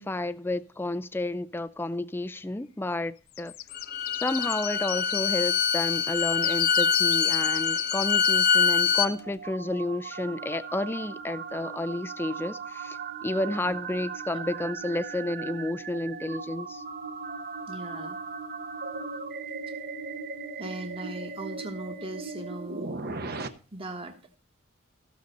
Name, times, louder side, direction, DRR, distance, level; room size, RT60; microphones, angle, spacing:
voice 1, 0.0-3.5 4.1-16.8, left 2 dB, 10° left, 0.4 m, -31 dB
sound 1, 3.3-8.3, left 15 dB, 90° left, 0.4 m, -35 dB
Bowed string instrument, 3.7-9.1, left 6 dB, 50° left, 0.8 m, -25 dB
sound 2, 8.4-23.5, right 4 dB, 50° right, 0.9 m, -38 dB
voice 2, 17.7-18.2 19.7-19.8 20.6-22.9 23.7-24.2, right 1 dB, 25° right, 1.4 m, -39 dB
15.0 x 6.5 x 4.0 m
head